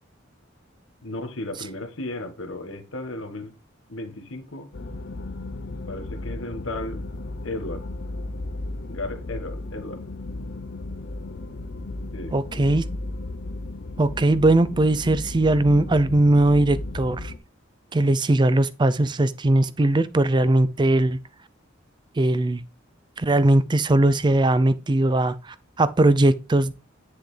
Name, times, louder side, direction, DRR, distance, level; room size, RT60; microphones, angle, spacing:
voice 1, 1.0-3.5 3.9-4.7 5.9-7.0 7.4-7.8 8.9-10.0 12.1-12.4, left 2 dB, 80° left, 1.4 m, -34 dB
sound 1, 4.7-17.4, left 2 dB, 60° left, 0.7 m, -35 dB
voice 2, 12.3-12.8 14.0-17.3 17.9-21.2 22.2-22.6 23.2-26.7, right 2 dB, 25° right, 0.4 m, -20 dB
10.0 x 6.5 x 3.3 m
head